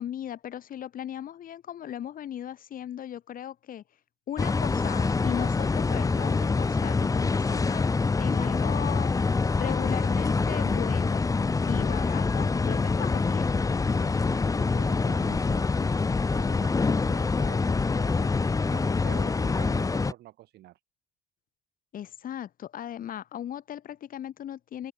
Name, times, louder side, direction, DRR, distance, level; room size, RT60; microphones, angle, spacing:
voice 1, 0.0-3.8 4.3-7.9 8.2-9.1 9.6-11.2 11.7-13.6 21.9-24.9, left 10 dB, 55° left, 3.6 m, -37 dB
sound 1, 4.4-20.1, left 4 dB, 20° left, 1.2 m, -25 dB
voice 2, 13.8-15.7 16.3-20.8, right 15 dB, 75° right, 5.3 m, -46 dB
cardioid pair, 110°, 17 cm